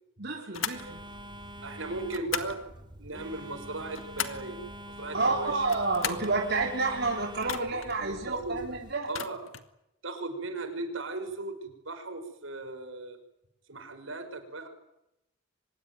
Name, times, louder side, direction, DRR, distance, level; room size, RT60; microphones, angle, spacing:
voice 1, 0.2-1.0 5.1-9.1, right 3 dB, 55° right, 0 dB, 3.8 m, -29 dB
sound 1, 0.5-0.9 2.1-2.6 3.6-4.5 5.6-6.3 7.4-7.9 9.0-9.7, left 8 dB, 80° left, 2.1 m, -36 dB
Telephone, 0.7-8.9, equal, 25° right, 3.7 m, -45 dB
voice 2, 1.6-2.7 3.0-4.6 4.9-5.7 7.7-8.6 9.0-9.5 10.0-13.2 13.7-14.7, right 2 dB, 85° right, 6 dB, 6.0 m, -37 dB
25.0 x 21.0 x 9.4 m, 0.86 s
head